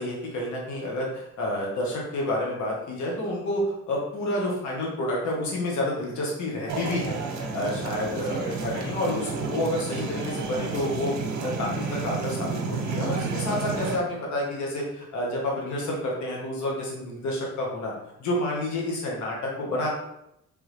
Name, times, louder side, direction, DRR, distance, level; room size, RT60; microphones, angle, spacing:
voice 1, 0.0-11.1 11.4-17.9 18.2-19.9, left 1 dB, 70° left, -2 dB, 1.3 m, -29 dB
sound 1, 6.7-14.0, right 4 dB, 70° right, 0.9 m, -31 dB
3.5 x 3.1 x 3.3 m, 0.79 s
cardioid pair, 90°, 30 cm